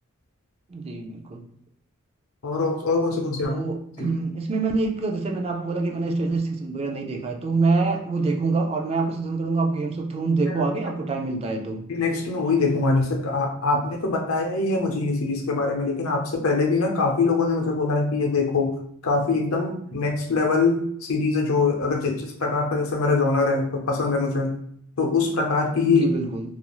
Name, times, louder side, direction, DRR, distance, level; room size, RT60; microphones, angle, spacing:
voice 1, 0.7-1.4 3.4-11.8 25.9-26.4, right 3 dB, 30° right, 2 dB, 0.3 m, -25 dB
voice 2, 2.4-3.6 4.0-4.1 10.5-10.6 11.9-18.8 19.0-24.5 25.0-26.0, left 3 dB, 85° left, 1 dB, 0.6 m, -23 dB
2.4 x 2.3 x 3.0 m, 0.67 s
head